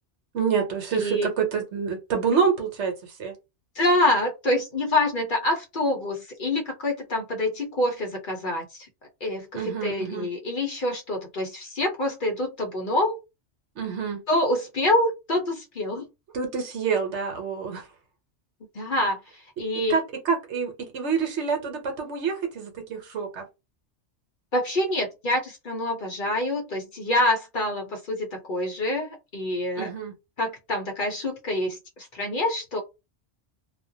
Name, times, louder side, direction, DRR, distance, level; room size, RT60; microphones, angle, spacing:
voice 1, 0.3-3.3 9.5-10.3 13.8-14.2 16.3-17.8 19.9-23.4 29.8-30.1, right 6 dB, 70° right, 1.1 m, -27 dB
voice 2, 0.9-1.3 3.7-8.9 9.2-13.2 14.3-16.1 18.7-19.2 19.6-20.0 24.5-29.9 30.4-32.8, left 1 dB, 50° left, 0.8 m, -26 dB
2.4 x 2.2 x 2.6 m
omnidirectional pair, 1.2 m